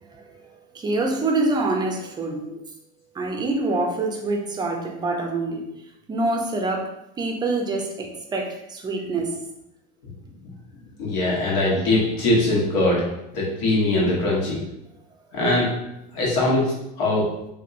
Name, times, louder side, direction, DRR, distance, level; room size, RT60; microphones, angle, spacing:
voice 1, 0.0-2.4 3.1-5.6 6.1-6.9 7.2-9.3, right 2 dB, 20° right, 2 dB, 0.5 m, -26 dB
voice 2, 11.0-13.1 13.3-14.6 15.3-15.7 16.1-17.3, left 2 dB, 80° left, -4 dB, 1.2 m, -21 dB
2.9 x 2.6 x 2.5 m, 0.85 s
supercardioid pair, 125°, 21 cm